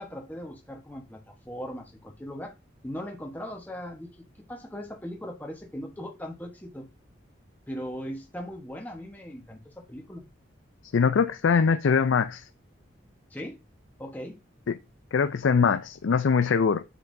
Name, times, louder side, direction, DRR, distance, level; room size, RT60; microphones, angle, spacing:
voice 1, 0.0-2.5 2.8-6.9 7.7-10.2 13.3-13.6 14.0-14.4, equal, 10° left, 1.1 m, -39 dB
voice 2, 10.9-12.5 14.7-14.8 15.1-16.8, left 5 dB, 85° left, 0.4 m, -22 dB
8.1 x 6.9 x 2.6 m
head